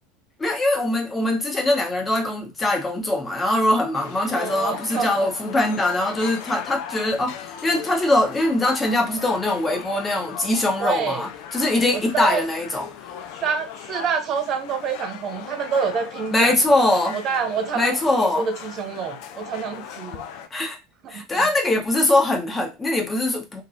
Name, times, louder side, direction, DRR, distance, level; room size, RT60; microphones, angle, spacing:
voice 1, 0.4-12.9 16.3-17.2 17.8-18.5 20.5-20.8 21.1-23.6, left 2 dB, 15° left, 0.9 m, -22 dB
sound 1, 3.9-20.5, left 8 dB, 55° left, 0.3 m, -38 dB
voice 2, 4.3-5.3 10.8-11.2 11.9-12.4 13.4-16.6 17.1-20.2 21.0-21.5, right 6 dB, 40° right, 0.4 m, -27 dB
2.8 x 2.7 x 2.5 m
figure-of-eight pair, 75°, 0 cm